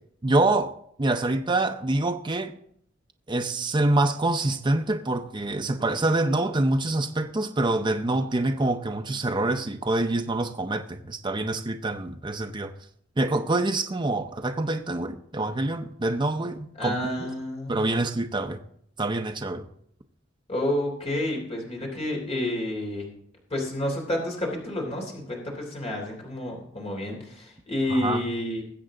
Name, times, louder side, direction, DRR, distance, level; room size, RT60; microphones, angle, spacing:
voice 1, 0.2-0.7 1.0-2.6 3.3-12.7 13.2-17.0 17.7-18.6 19.0-19.7 27.9-28.2, right 2 dB, 25° right, 0.6 m, -26 dB
voice 2, 16.8-17.8 20.5-23.1 23.5-28.6, left 1 dB, 35° left, 3.3 m, -29 dB
20.5 x 7.7 x 3.8 m
head